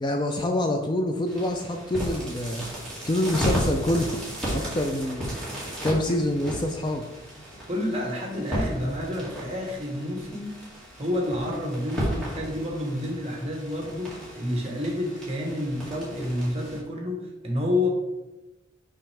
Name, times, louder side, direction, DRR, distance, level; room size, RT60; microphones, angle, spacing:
voice 1, 0.0-2.7 3.0-4.2 4.5-5.3 5.8-7.1, left 1 dB, 25° left, 4 dB, 0.4 m, -26 dB
sound 1, 1.3-16.8, equal, 5° left, 2.0 m, -34 dB
voice 2, 7.7-10.5 11.0-17.9, left 1 dB, 30° right, 1 dB, 1.2 m, -29 dB
5.9 x 5.5 x 3.4 m, 1.0 s
head